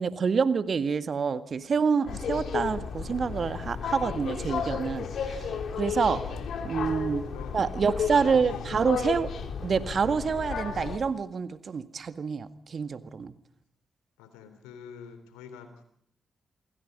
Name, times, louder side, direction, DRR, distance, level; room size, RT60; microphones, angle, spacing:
voice 1, 0.0-5.5 5.8-6.2 6.7-7.2 7.5-9.3 9.6-13.3, right 5 dB, 55° right, 11 dB, 1.9 m, -27 dB
sound 1, 2.1-11.0, left 6 dB, 65° left, 3.5 m, -33 dB
voice 2, 6.1-9.0 14.2-15.8, left 7 dB, 85° left, 10 dB, 3.5 m, -46 dB
28.0 x 23.5 x 5.4 m, 0.67 s
hypercardioid pair, 40°, 0 cm